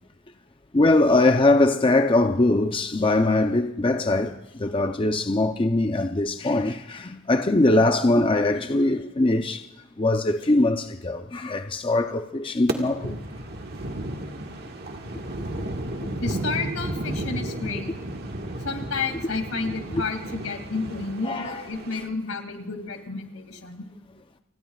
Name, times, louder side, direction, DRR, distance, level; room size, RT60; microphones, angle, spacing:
voice 1, 0.7-9.6 10.0-13.1 15.6-15.7 16.0-16.1 19.9-20.0 21.2-21.6, left 2 dB, 25° left, 0.6 m, -22 dB
sound 1, 12.7-22.0, right 1 dB, 50° right, 1.6 m, -33 dB
voice 2, 16.2-17.9 18.6-23.8, left 4 dB, 85° left, 2.5 m, -31 dB
30.0 x 19.5 x 2.4 m
head